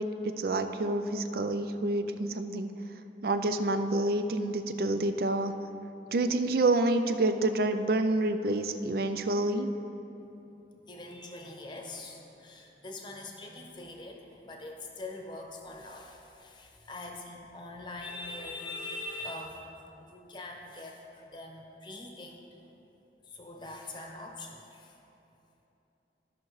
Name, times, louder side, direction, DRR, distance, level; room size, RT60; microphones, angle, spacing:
voice 1, 0.0-2.7 3.2-5.5 6.1-9.7, right 2 dB, 55° right, 9 dB, 0.4 m, -28 dB
voice 2, 10.9-19.7 20.0-22.4 23.3-25.0, left 2 dB, 25° left, 1 dB, 0.8 m, -43 dB
14.5 x 5.8 x 3.2 m, 3.0 s
head